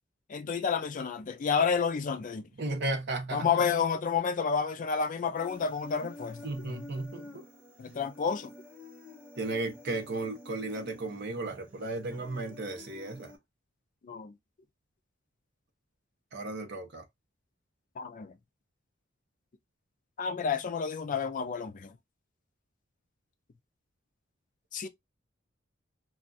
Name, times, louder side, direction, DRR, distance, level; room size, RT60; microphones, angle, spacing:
voice 1, 0.3-2.5 3.3-6.8 7.8-8.5 14.0-14.3 18.0-18.3 20.2-21.9 24.7-24.9, left 6 dB, 40° left, 0.4 m, -30 dB
voice 2, 2.6-3.5 6.0-6.1 6.4-7.4 9.4-13.3 16.3-17.0, right 2 dB, 60° right, 0.8 m, -35 dB
Human voice, 5.4-13.3, left 2 dB, 10° right, 0.9 m, -50 dB
2.4 x 2.3 x 3.8 m
head